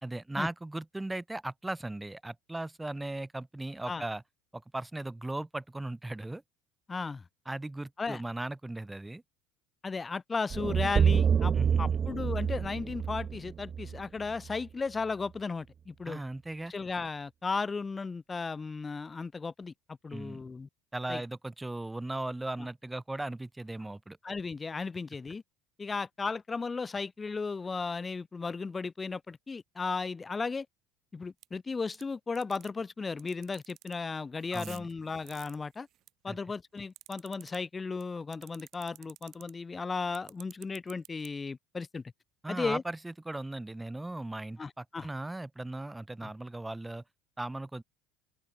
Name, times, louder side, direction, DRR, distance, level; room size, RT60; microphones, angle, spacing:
voice 1, 0.0-4.2 4.5-6.4 7.5-9.2 11.5-12.0 16.1-16.7 20.1-20.4 20.9-24.2 34.5-34.9 36.3-36.4 42.4-47.0 47.4-47.8, right 2 dB, 10° right, 2.3 m, -37 dB
voice 2, 6.9-7.2 8.0-8.2 9.8-16.2 16.7-20.7 21.1-21.2 24.2-25.4 25.8-30.7 31.1-35.9 36.2-42.0 42.5-42.8 44.6-45.1 46.2-46.3, left 4 dB, 25° left, 2.6 m, -35 dB
sound 1, 10.5-14.6, right 7 dB, 35° right, 0.7 m, -28 dB
sound 2, 31.4-31.5 31.9-32.0 32.3-32.7 33.2-33.9 34.4-36.1 36.5-37.6 38.0-38.1 38.3-39.5 40.1-41.3, right 13 dB, 55° right, 3.0 m, -50 dB
open air
hypercardioid pair, 80°, 0 cm